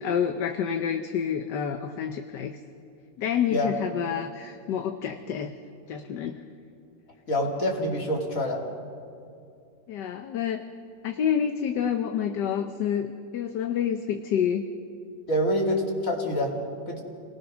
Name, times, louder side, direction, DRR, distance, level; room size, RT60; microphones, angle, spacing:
voice 1, 0.0-2.6 3.2-5.5 5.9-6.4 9.9-10.6 11.0-14.7, left 8 dB, 70° left, 6 dB, 1.5 m, -28 dB
voice 2, 7.3-8.6 15.3-16.5 16.9-17.0, equal, 45° left, -1 dB, 3.3 m, -26 dB
29.0 x 19.0 x 6.2 m, 2.5 s
omnidirectional pair, 2.0 m